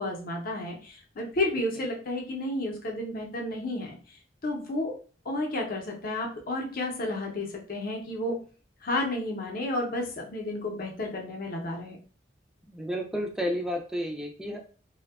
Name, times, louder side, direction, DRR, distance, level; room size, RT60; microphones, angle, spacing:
voice 1, 0.0-4.0 4.4-5.0 5.3-8.4 8.8-12.0, left 1 dB, 50° left, 0 dB, 0.6 m, -31 dB
voice 2, 12.6-14.6, equal, 5° right, 1 dB, 0.3 m, -31 dB
2.6 x 2.2 x 2.3 m, 0.39 s
head